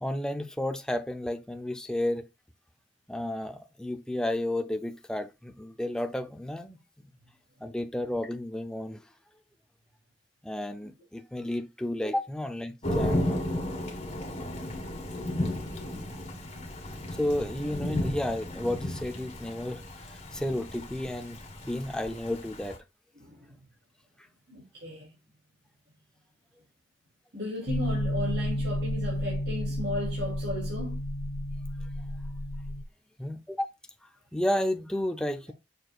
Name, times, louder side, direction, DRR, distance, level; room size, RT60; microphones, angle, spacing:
voice 1, 0.0-2.2 3.1-6.8 7.6-9.0 10.4-13.4 16.0-16.2 17.2-21.4 21.7-22.8 33.2-33.7 34.3-35.5, left 1 dB, 5° left, 0.6 m, -32 dB
Thunder / Rain, 12.8-22.8, left 1 dB, 35° left, 2.0 m, -34 dB
voice 2, 23.1-23.6 24.5-25.1 27.3-31.0, left 1 dB, 65° right, 3.0 m, -35 dB
sound 1, 27.7-32.8, left 1 dB, 75° left, 0.5 m, -31 dB
6.8 x 6.1 x 2.4 m
head